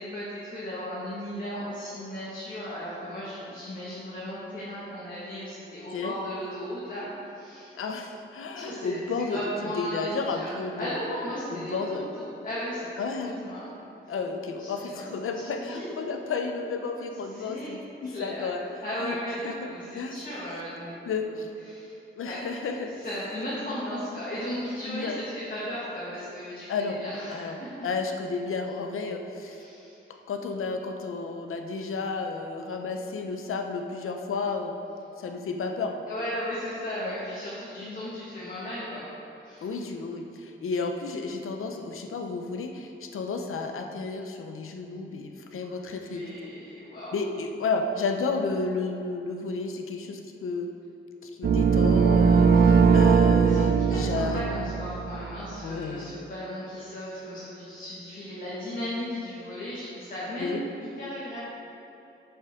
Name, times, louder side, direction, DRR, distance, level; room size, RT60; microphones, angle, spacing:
voice 1, 0.0-7.7 8.5-9.0 9.3-10.5 10.8-13.7 14.6-14.7 14.9-15.2 15.6-16.0 17.3-17.7 18.0-18.4 18.8-21.3 21.6-21.9 22.2-22.4 22.7-26.7 27.0-27.7 29.4-30.0 36.1-39.1 39.4-39.7 45.6-45.7 46.0-47.1 53.4-61.4, equal, 40° left, -8 dB, 1.8 m, -36 dB
voice 2, 7.8-11.0 11.5-12.1 13.0-13.4 14.1-18.6 19.0-19.2 19.4-20.2 21.1-21.5 22.2-22.9 24.9-25.2 26.7-27.0 27.3-29.6 30.3-34.8 35.2-36.0 37.0-37.1 37.8-38.0 39.6-46.3 47.1-50.7 51.2-54.5 55.6-56.2 60.4-60.6, left 4 dB, 90° left, 5 dB, 0.7 m, -32 dB
sound 1, 51.4-55.4, right 5 dB, 50° right, 0.4 m, -20 dB
8.6 x 7.2 x 3.7 m, 3.0 s
wide cardioid pair, 110°, 21 cm